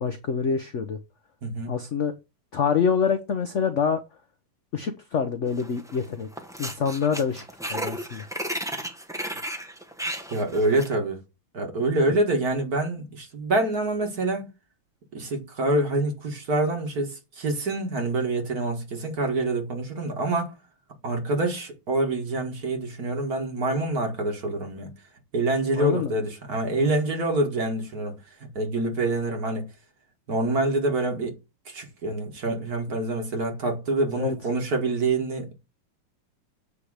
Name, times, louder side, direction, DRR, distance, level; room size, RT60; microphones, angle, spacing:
voice 1, 0.0-1.0 1.7-2.1 2.5-4.0 4.7-6.3 6.6-8.3 12.1-12.2 25.7-26.2 26.7-26.9 34.2-34.3, left 6 dB, 60° left, 0.8 m, -26 dB
voice 2, 1.4-1.7 10.3-11.2 11.5-14.5 15.1-20.5 21.0-24.9 25.3-29.7 30.3-31.4 31.7-35.5, right 2 dB, 50° right, 2.2 m, -26 dB
sound 1, 5.6-6.0 6.3-10.9, right 1 dB, 5° right, 0.4 m, -34 dB
8.5 x 3.4 x 6.4 m
omnidirectional pair, 2.2 m